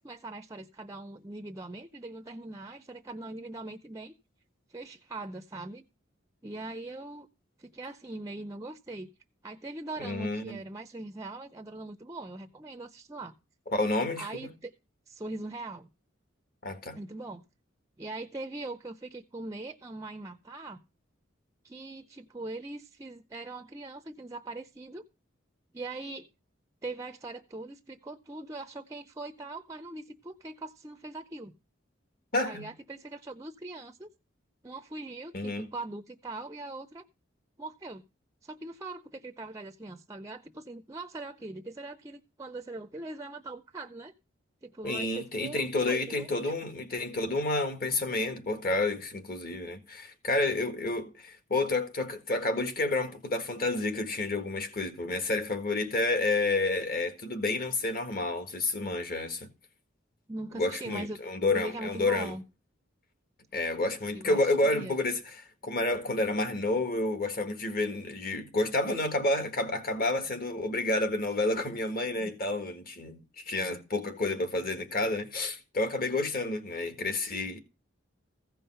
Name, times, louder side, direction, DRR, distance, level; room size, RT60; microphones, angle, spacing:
voice 1, 0.0-4.1 4.7-5.9 6.4-7.3 7.6-9.1 9.4-13.3 14.2-14.7 15.1-15.9 16.9-17.4 18.0-20.8 21.6-25.0 25.7-26.3 26.8-31.5 32.5-34.1 34.6-37.1 37.6-38.0 38.4-44.1 44.6-46.7 60.3-61.2 61.5-62.4 64.1-64.9 72.2-72.3, right 2 dB, 15° right, 0.5 m, -41 dB
voice 2, 10.0-10.6 13.7-14.5 16.6-17.0 32.3-32.6 35.3-35.7 44.8-59.5 60.5-62.3 63.5-77.6, left 2 dB, 50° left, 1.7 m, -30 dB
15.5 x 5.5 x 5.5 m
head